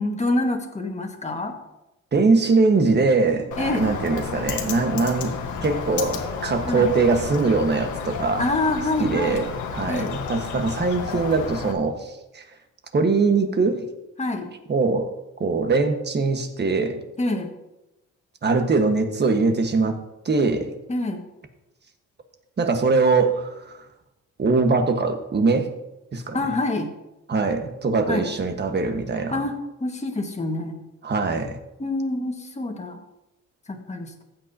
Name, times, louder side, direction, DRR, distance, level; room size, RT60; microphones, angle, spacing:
voice 1, 0.0-1.5 3.6-3.8 6.6-6.9 8.4-9.4 9.9-10.2 14.2-14.5 17.2-17.5 20.9-21.2 26.3-26.9 28.1-28.3 29.3-30.8 31.8-33.0 33.7-34.2, left 2 dB, 20° left, 3 dB, 1.7 m, -26 dB
voice 2, 2.1-5.3 5.6-8.4 9.0-12.4 12.9-13.9 14.7-15.1 15.4-17.0 18.4-20.0 20.2-20.7 22.6-23.8 24.4-25.7 26.1-26.4 27.3-29.4 31.0-31.6, right 3 dB, 35° right, 6 dB, 1.4 m, -22 dB
Bird, 3.5-11.7, left 6 dB, 75° left, 1.5 m, -31 dB
15.0 x 8.9 x 2.8 m, 0.93 s
cardioid pair, 90°, 30 cm